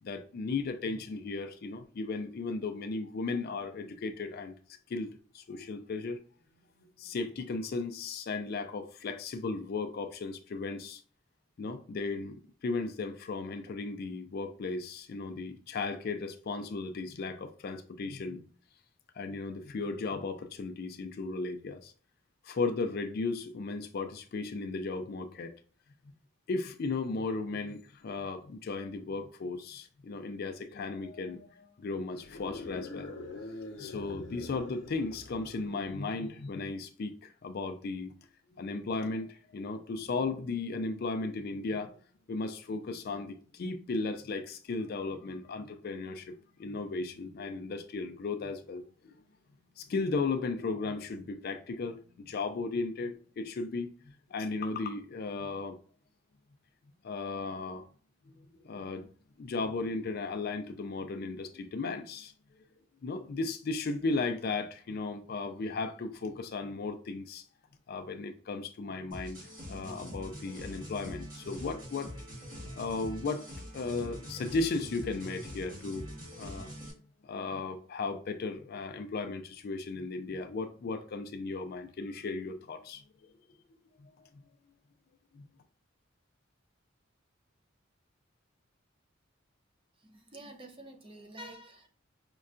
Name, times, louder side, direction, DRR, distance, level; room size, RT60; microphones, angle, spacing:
voice 1, 0.0-4.6 4.9-6.2 7.0-11.0 11.6-18.4 19.2-21.9 22.4-25.5 26.5-33.1 33.8-38.1 38.6-42.0 42.3-46.3 46.6-49.2 49.8-53.9 54.3-55.8 57.0-57.9 58.6-59.1 59.4-62.3 63.0-67.4 67.9-69.4 69.7-72.1 72.8-73.4 73.7-76.1 76.4-76.7 77.2-83.0 84.0-84.1 85.3-85.5, left 3 dB, 50° left, 0.4 m, -35 dB
sound 1, 32.2-35.8, left 2 dB, 80° left, 0.8 m, -44 dB
sound 2, 69.1-76.9, equal, 45° right, 1.4 m, -44 dB
voice 2, 90.0-91.9, right 1 dB, 25° right, 0.5 m, -48 dB
5.3 x 2.2 x 2.4 m
head